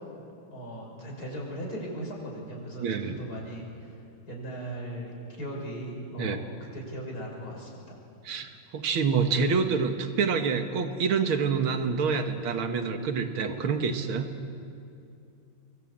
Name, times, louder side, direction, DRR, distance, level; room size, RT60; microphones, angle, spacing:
voice 1, 0.5-4.0 4.3-6.4 6.7-8.0, right 1 dB, 45° left, -2 dB, 7.1 m, -38 dB
voice 2, 2.8-3.2 6.2-6.4 8.2-14.3, right 5 dB, 85° right, 6 dB, 2.3 m, -27 dB
26.0 x 24.0 x 8.8 m, 2.5 s
omnidirectional pair, 2.2 m